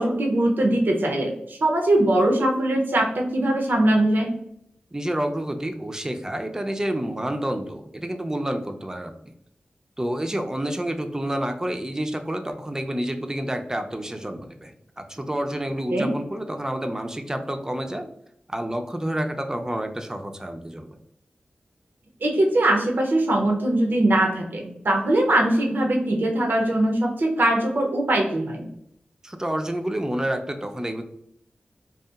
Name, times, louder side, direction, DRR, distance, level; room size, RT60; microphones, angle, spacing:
voice 1, 0.0-4.3 15.9-16.1 22.2-28.7, right 1 dB, 70° right, 0 dB, 0.5 m, -21 dB
voice 2, 4.9-9.1 10.0-18.1 18.5-21.0 29.2-31.0, right 1 dB, 15° right, 6 dB, 0.4 m, -29 dB
2.8 x 2.3 x 2.3 m, 0.74 s
cardioid pair, 55°, 3 cm